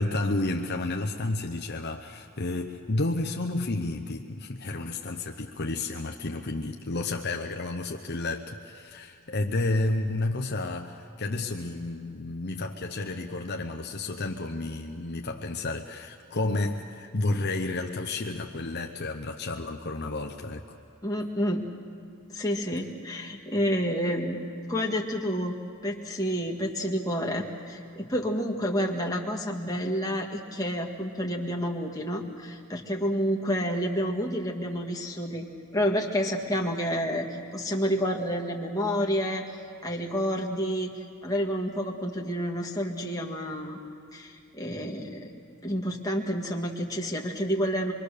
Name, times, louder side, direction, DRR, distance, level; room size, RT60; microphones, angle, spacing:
voice 1, 0.0-20.8, left 2 dB, 50° left, 3 dB, 0.9 m, -31 dB
voice 2, 21.0-21.6 22.3-25.6 25.8-35.5 35.7-39.4 39.8-43.8 44.1-45.3 45.6-47.9, equal, 15° left, 0 dB, 1.9 m, -29 dB
26.0 x 23.0 x 6.7 m, 2.3 s
head